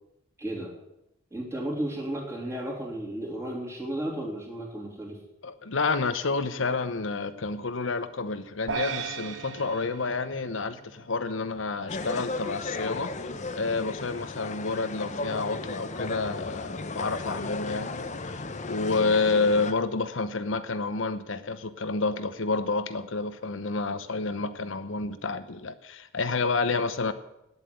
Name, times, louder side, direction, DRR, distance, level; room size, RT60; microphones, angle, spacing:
voice 1, 0.4-0.7 1.3-5.2, right 1 dB, 15° right, -2 dB, 3.1 m, -33 dB
voice 2, 5.4-13.1 13.5-27.1, left 3 dB, 80° left, 12 dB, 0.9 m, -29 dB
sound 1, 8.7-11.2, right 5 dB, 75° right, 1.0 m, -36 dB
sound 2, 11.9-19.7, left 3 dB, 40° left, 0.9 m, -35 dB
9.9 x 8.3 x 9.3 m, 0.88 s
head